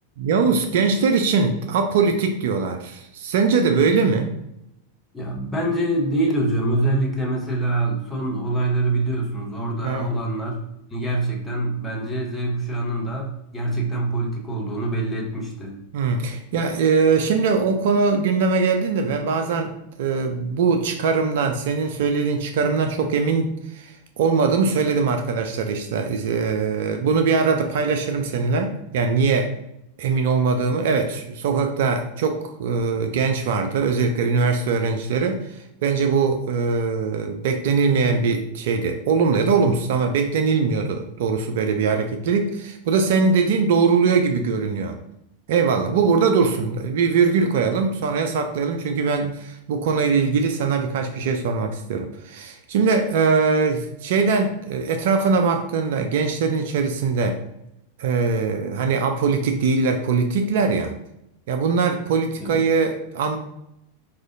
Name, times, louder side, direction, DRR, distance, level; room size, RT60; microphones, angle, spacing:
voice 1, 0.2-4.3 9.8-10.1 15.9-29.5 30.0-45.0 45.5-57.4 58.0-60.9 61.5-63.4, right 5 dB, 55° right, 6 dB, 0.3 m, -21 dB
voice 2, 5.1-10.6 10.9-15.8 62.4-62.6, right 2 dB, 10° left, -2 dB, 0.9 m, -25 dB
4.8 x 2.4 x 2.6 m, 0.81 s
figure-of-eight pair, 90°, 0 cm